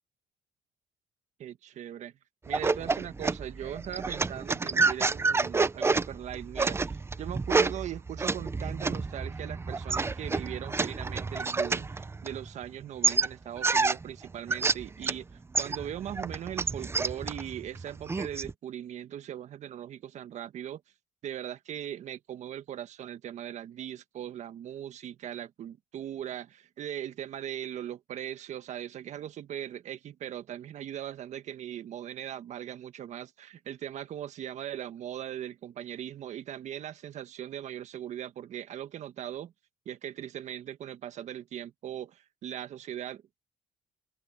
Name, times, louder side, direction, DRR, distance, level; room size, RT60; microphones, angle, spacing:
voice 1, 1.4-2.1 2.4-20.8 21.2-39.5 39.8-43.4, right 10 dB, 60° right, 1.5 m, -39 dB
sound 1, 2.5-12.6 13.0-15.2 15.5-18.5, right 4 dB, 20° right, 0.7 m, -29 dB
open air
cardioid pair, 95°, 13 cm